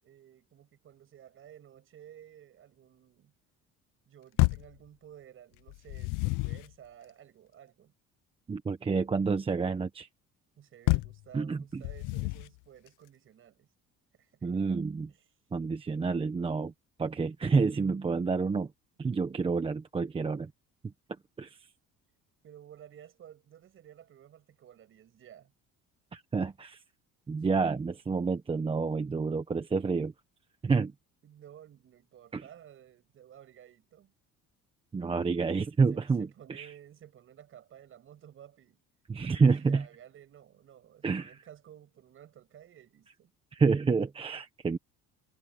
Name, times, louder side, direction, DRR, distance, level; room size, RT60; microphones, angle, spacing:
voice 1, 0.0-3.3 4.1-7.9 10.6-13.7 14.1-14.5 22.4-25.5 27.4-27.6 31.2-34.1 35.9-38.8 39.6-43.3, right 10 dB, 45° right, 6.1 m, -54 dB
sound 1, 4.4-4.8 5.7-6.7 10.9-11.2 11.8-12.6, left 22 dB, 90° left, 0.6 m, -29 dB
voice 2, 8.5-10.1 11.3-11.8 14.4-15.1 15.5-16.7 17.0-18.7 19.0-20.5 21.4-21.7 26.1-26.8 27.3-30.1 30.6-30.9 32.3-32.4 34.9-36.7 39.1-39.8 41.0-41.4 43.5-44.8, right 4 dB, 20° right, 1.1 m, -29 dB
cardioid pair, 160°, 30 cm